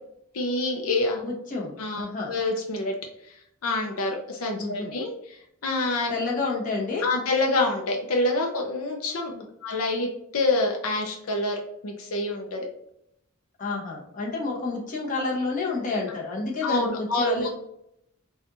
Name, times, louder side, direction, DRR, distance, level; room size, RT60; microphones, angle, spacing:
voice 1, 0.3-1.2 1.8-2.9 3.6-5.4 5.6-6.1 7.0-9.3 9.6-12.6 16.6-17.5, left 2 dB, 80° left, 1 dB, 0.6 m, -27 dB
voice 2, 1.2-2.3 4.6-4.9 6.1-7.1 9.3-9.4 13.6-17.5, left 3 dB, 35° left, -3 dB, 1.0 m, -29 dB
4.2 x 2.4 x 2.6 m, 0.76 s
head